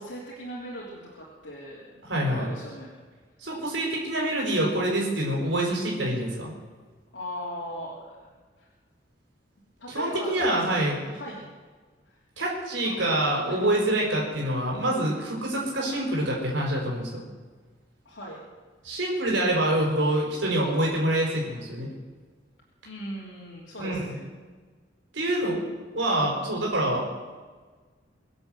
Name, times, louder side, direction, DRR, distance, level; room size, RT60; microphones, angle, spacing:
voice 1, 0.0-2.9 7.1-8.3 8.6-8.7 9.8-11.5 12.1-12.2 12.8-13.6 18.0-18.4 22.8-24.2, equal, 80° left, -5 dB, 3.3 m, -39 dB
voice 2, 2.0-2.5 3.4-6.5 9.9-11.1 12.4-17.2 18.8-21.9 23.8-24.2 25.1-25.7 25.9-27.1, right 1 dB, 80° right, -2 dB, 4.6 m, -26 dB
23.5 x 7.9 x 7.7 m, 1.4 s
head